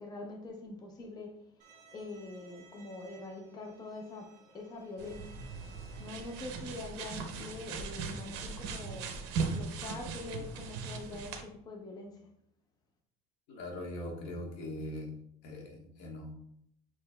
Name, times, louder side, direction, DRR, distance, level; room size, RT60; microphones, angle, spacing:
voice 1, 0.0-1.5 1.9-5.4 6.0-9.1 9.5-12.2, left 3 dB, 20° left, 1 dB, 0.6 m, -44 dB
Bowed string instrument, 1.6-6.6, right 4 dB, 40° right, 1.4 m, -59 dB
sound 1, 5.0-11.4, right 5 dB, 65° right, 0.8 m, -39 dB
voice 2, 13.5-15.1 15.4-16.3, left 1 dB, 65° left, 0 dB, 1.4 m, -41 dB
6.5 x 3.1 x 2.2 m, 0.72 s
cardioid pair, 155°, 19 cm